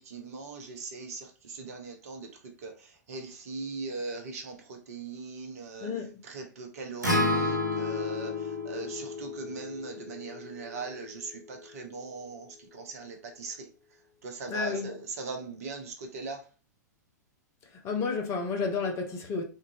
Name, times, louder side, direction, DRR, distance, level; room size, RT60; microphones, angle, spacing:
voice 1, 0.1-1.2 1.5-2.3 2.6-2.7 3.1-4.5 4.9-5.9 6.3-8.3 8.7-12.5 12.7-13.5 14.2-16.4, right 4 dB, 55° right, 0.9 m, -39 dB
voice 2, 5.8-6.2 14.5-15.0 17.8-19.4, left 4 dB, 30° left, 0.8 m, -31 dB
Acoustic guitar, 7.0-11.3, left 2 dB, 80° right, 0.9 m, -31 dB
3.7 x 2.6 x 2.7 m
figure-of-eight pair, 100°, 10 cm